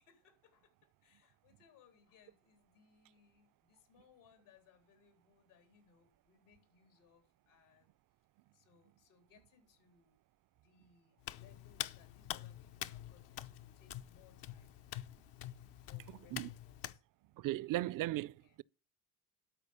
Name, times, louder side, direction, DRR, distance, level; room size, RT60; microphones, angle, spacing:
voice 1, 0.0-7.9 8.5-10.1 10.5-14.8 15.8-17.0 18.3-18.6, left 6 dB, 85° left, 3.6 m, -68 dB
Hands, 11.2-17.0, left 12 dB, 65° left, 0.8 m, -46 dB
voice 2, 17.4-18.6, right 16 dB, 50° right, 0.4 m, -37 dB
12.5 x 4.7 x 7.0 m
supercardioid pair, 75°, 44 cm